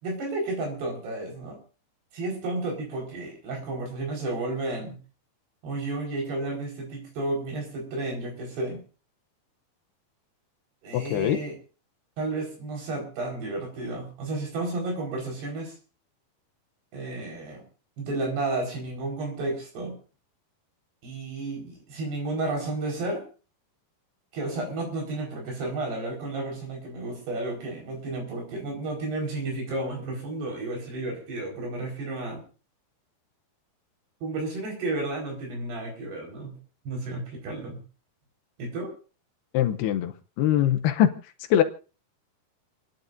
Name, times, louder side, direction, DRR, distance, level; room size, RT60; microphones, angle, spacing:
voice 1, 0.0-1.6 2.1-5.0 5.6-8.8 10.8-11.6 12.2-15.7 16.9-17.6 18.0-20.0 21.0-23.3 24.3-32.4 34.2-36.6 36.9-37.8 38.6-38.9, right 2 dB, 80° right, 0 dB, 6.9 m, -32 dB
voice 2, 10.9-11.4 39.5-41.1 41.5-41.6, left 11 dB, 80° left, 7 dB, 2.9 m, -22 dB
29.5 x 10.5 x 2.7 m, 0.35 s
omnidirectional pair, 4.7 m